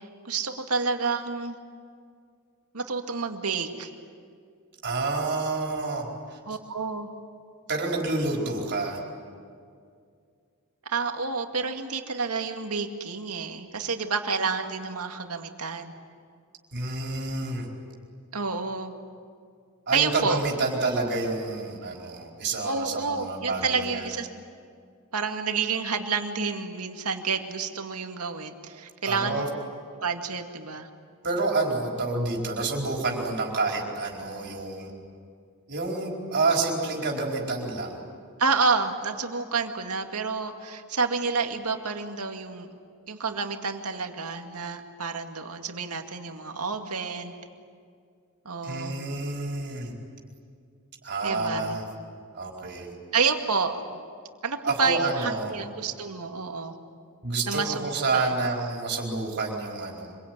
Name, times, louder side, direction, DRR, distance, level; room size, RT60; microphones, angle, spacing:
voice 1, 0.2-1.6 2.7-3.9 6.5-7.1 10.9-15.9 18.3-18.9 19.9-20.4 22.6-24.3 25.1-29.4 30.0-30.9 38.4-42.7 43.1-47.3 48.5-49.0 51.2-51.8 53.1-53.8 54.4-56.7 57.5-58.3, right 4 dB, 85° right, 5 dB, 2.2 m, -29 dB
voice 2, 4.8-6.4 7.7-9.0 16.7-17.7 19.9-24.1 29.0-29.5 31.2-34.9 35.7-38.0 48.6-49.9 51.0-51.8 52.3-53.0 54.6-55.5 57.2-60.1, right 3 dB, 50° right, -1 dB, 4.6 m, -28 dB
26.0 x 23.5 x 9.5 m, 2.2 s
head